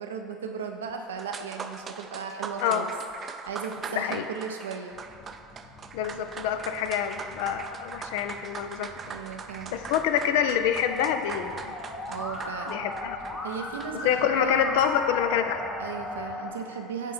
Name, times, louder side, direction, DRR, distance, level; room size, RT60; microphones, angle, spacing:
voice 1, 0.0-2.9 3.2-5.0 9.0-9.8 12.1-12.8 13.4-14.8 15.8-17.1, right 6 dB, 90° right, 4 dB, 0.5 m, -36 dB
sound 1, 0.9-1.0 1.2-14.2, right 5 dB, 35° right, 0.4 m, -41 dB
voice 2, 3.9-4.3 5.9-8.9 9.7-11.7 12.7-13.4 14.0-15.6, left 8 dB, 75° left, 8 dB, 0.4 m, -27 dB
sound 2, 4.9-16.4, left 3 dB, 45° left, 1.2 m, -52 dB
Musical instrument, 10.9-16.5, left 2 dB, 20° left, 1.2 m, -36 dB
8.9 x 3.7 x 4.1 m, 2.5 s
hypercardioid pair, 80°, 0 cm